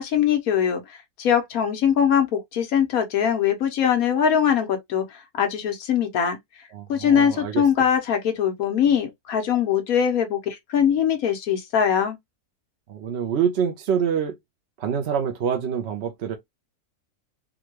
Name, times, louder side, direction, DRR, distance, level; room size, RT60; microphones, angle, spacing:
voice 1, 0.0-6.4 6.9-12.2, left 8 dB, 70° left, 1.3 m, -22 dB
voice 2, 6.7-7.6 12.9-14.4 14.8-16.4, right 7 dB, 60° right, 0.7 m, -26 dB
3.7 x 2.2 x 3.0 m
omnidirectional pair, 1.6 m